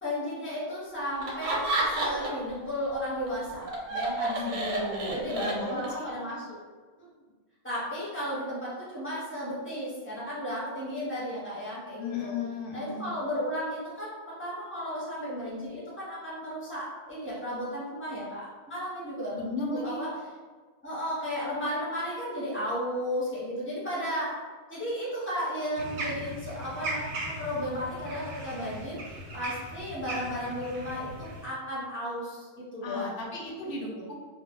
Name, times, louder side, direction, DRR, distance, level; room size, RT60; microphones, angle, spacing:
voice 1, 0.0-5.4 5.7-6.6 7.0-7.1 7.6-12.4 12.7-19.5 19.7-20.3 20.8-24.4 24.7-33.2 33.6-34.1, equal, 15° left, -8 dB, 0.6 m, -34 dB
Laughter, 1.2-2.5 2.8-6.0, right 2 dB, 90° right, 1.0 m, -30 dB
voice 2, 4.3-6.0 12.0-13.1 19.3-20.0 32.8-34.1, left 3 dB, 65° left, -1 dB, 0.7 m, -35 dB
sound 1, 25.8-31.4, right 1 dB, 70° right, 0.8 m, -38 dB
2.2 x 2.0 x 3.4 m, 1.4 s
omnidirectional pair, 1.3 m